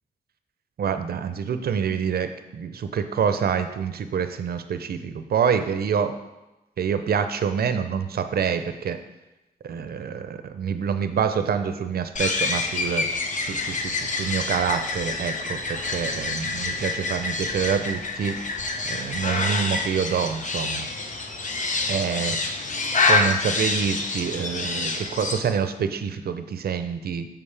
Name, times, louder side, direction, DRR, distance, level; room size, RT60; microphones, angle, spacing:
voice 1, 0.8-6.2 6.8-9.0 9.6-13.1 13.5-18.4 18.9-20.9 21.9-22.4 23.1-27.3, right 7 dB, 75° right, 9 dB, 0.6 m, -26 dB
sound 1, 12.2-25.4, left 3 dB, 50° left, 0.8 m, -27 dB
7.2 x 7.2 x 3.3 m, 1.0 s
cardioid pair, 85°, 16 cm